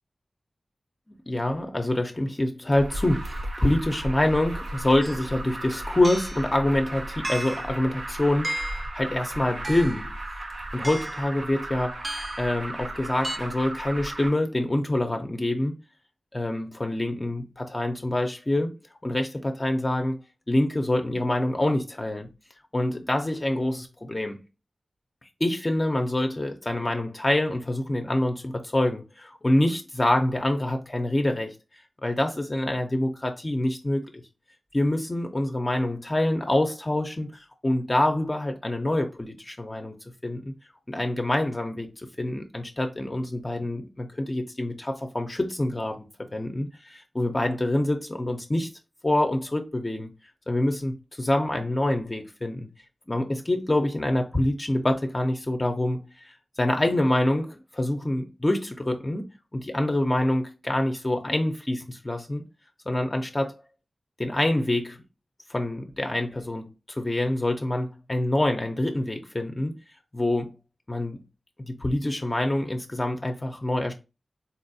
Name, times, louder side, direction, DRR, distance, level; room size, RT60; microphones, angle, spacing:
voice 1, 1.3-10.2 10.7-12.0 12.4-15.7 16.3-18.7 19.0-20.2 20.5-22.3 22.7-24.4 25.4-31.5 32.0-34.2 34.7-39.9 40.2-40.5 40.9-46.1 46.3-48.7 49.0-50.1 50.5-52.7 53.1-59.2 59.5-62.4 62.9-63.5 64.2-65.0 65.5-69.7 70.1-70.6 70.9-71.2 71.6-73.9, left 1 dB, 30° left, 0.5 m, -26 dB
Alarm, 2.7-14.3, right 1 dB, 70° right, 0.6 m, -35 dB
sound 1, 5.0-5.2 6.0-6.4 7.2-7.7 8.4-8.9 9.6-10.1 10.8-11.2 12.0-12.5 13.2-13.4, right 1 dB, 35° right, 0.3 m, -34 dB
4.0 x 2.3 x 2.6 m
wide cardioid pair, 75°, 0 cm